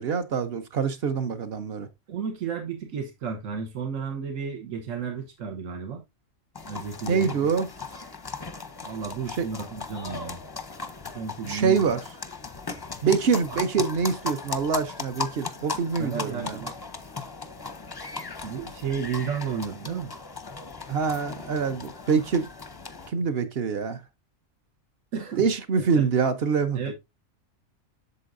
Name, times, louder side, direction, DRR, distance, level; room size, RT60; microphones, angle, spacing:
voice 1, 0.0-1.9 7.1-7.7 9.4-9.5 11.4-12.0 13.0-16.6 20.9-22.5 23.1-24.0 25.4-26.9, right 5 dB, 55° right, 1.1 m, -25 dB
voice 2, 2.1-6.0 6.6-7.5 8.8-10.4 11.1-11.9 16.0-16.7 18.4-20.1 25.1-25.5 25.9-26.0 26.7-26.9, right 6 dB, 85° right, 1.5 m, -33 dB
sound 1, 6.5-23.1, left 4 dB, 25° left, 0.5 m, -37 dB
8.3 x 6.8 x 2.6 m
omnidirectional pair, 1.3 m